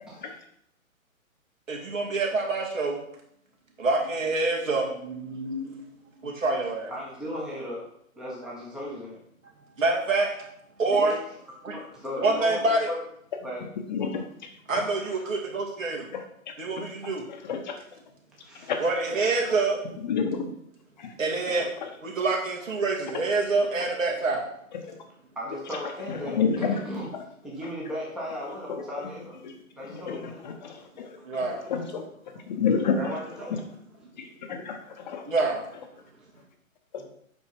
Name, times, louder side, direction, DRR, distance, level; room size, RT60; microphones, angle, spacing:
voice 1, 1.7-3.0 3.8-5.8 6.2-6.9 9.8-10.5 10.8-11.2 11.6-11.8 12.2-12.9 14.7-16.1 16.6-17.3 18.8-19.8 21.2-21.7 22.0-24.5 31.2-31.6 35.3-35.6, right 3 dB, 65° right, 0 dB, 2.5 m, -26 dB
voice 2, 6.9-7.9 8.2-9.2 10.9-11.2 11.6-13.0 13.4-13.6 18.4-18.7 25.3-27.1 27.4-29.4 29.7-30.3 31.5-31.6 33.0-33.6 36.9-37.1, equal, ahead, -5 dB, 0.9 m, -36 dB
voice 3, 13.9-14.8 16.1-17.8 18.5-18.8 19.8-20.5 21.0-21.9 23.1-23.2 24.7-25.0 25.7-25.8 26.1-26.8 27.1-27.2 28.7-28.8 29.4-29.6 29.8-32.1 32.3-33.2 33.5-33.6 34.2-35.3, left 6 dB, 35° left, 5 dB, 0.9 m, -31 dB
7.9 x 5.4 x 4.4 m, 0.71 s
figure-of-eight pair, 140°, 42 cm